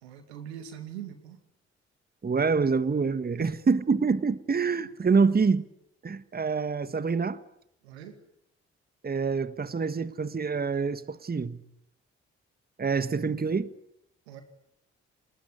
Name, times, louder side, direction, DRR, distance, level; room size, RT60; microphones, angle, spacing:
voice 1, 0.0-1.4 3.4-3.5 7.8-8.1 14.3-14.4, right 10 dB, 85° right, 2.4 m, -42 dB
voice 2, 2.2-5.6 6.0-7.4 9.0-11.6 12.8-13.7, right 5 dB, 30° right, 1.4 m, -26 dB
29.0 x 19.5 x 9.8 m
hypercardioid pair, 40°, 31 cm